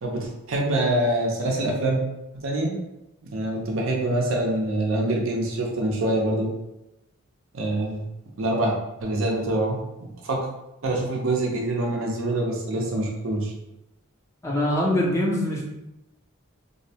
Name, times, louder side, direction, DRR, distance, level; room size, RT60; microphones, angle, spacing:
voice 1, 0.0-2.0 2.4-2.7 3.3-6.5 7.5-8.0 8.4-10.5 10.8-13.5, right 1 dB, 75° right, -1 dB, 0.6 m, -25 dB
voice 2, 14.4-15.6, left 1 dB, 15° left, -2 dB, 0.4 m, -23 dB
2.6 x 2.1 x 2.7 m, 0.91 s
head